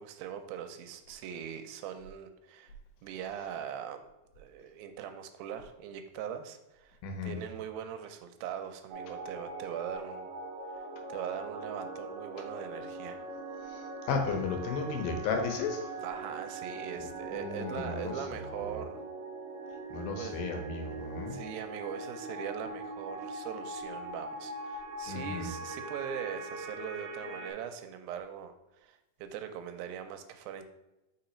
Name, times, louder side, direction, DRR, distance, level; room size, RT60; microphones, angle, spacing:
voice 1, 0.0-2.7 3.0-4.1 4.4-10.3 10.8-10.9 11.1-13.2 16.0-19.0 20.2-20.4 21.3-30.6, right 9 dB, 85° right, 8 dB, 2.4 m, -41 dB
voice 2, 7.0-7.4 13.6-15.9 17.0-18.4 18.7-18.8 19.9-21.4 25.1-25.5, left 4 dB, 80° left, 4 dB, 2.6 m, -35 dB
sound 1, 8.9-27.5, right 2 dB, 70° right, 1.9 m, -41 dB
5.7 x 3.9 x 4.3 m, 0.97 s
omnidirectional pair, 4.1 m